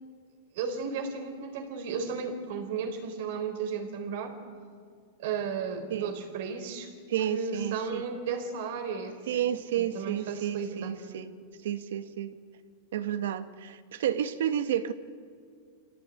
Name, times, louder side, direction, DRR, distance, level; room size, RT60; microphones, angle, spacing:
voice 1, 0.5-4.4 5.2-6.9 7.3-9.4 9.7-11.0, right 5 dB, 60° right, 7 dB, 4.0 m, -34 dB
voice 2, 7.1-8.0 9.3-11.3 11.6-12.3 12.9-14.9, right 10 dB, 80° right, 11 dB, 1.5 m, -31 dB
26.5 x 17.0 x 9.3 m, 2.2 s
supercardioid pair, 155°, 0 cm